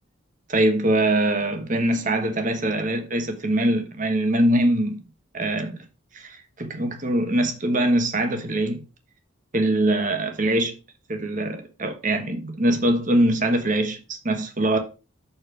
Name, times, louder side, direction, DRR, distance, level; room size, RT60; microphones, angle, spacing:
voice 1, 0.5-5.0 5.3-5.8 6.1-8.8 9.5-10.7 11.1-14.8, right 1 dB, 40° right, 1.2 m, -23 dB
6.8 x 4.4 x 5.0 m
head